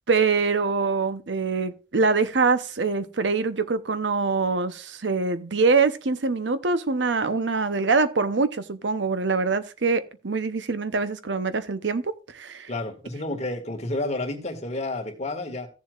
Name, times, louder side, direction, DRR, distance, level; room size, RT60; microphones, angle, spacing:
voice 1, 0.1-12.7, right 4 dB, 75° right, 0.8 m, -24 dB
voice 2, 12.7-15.7, left 2 dB, 40° left, 1.9 m, -30 dB
16.0 x 7.3 x 2.5 m
head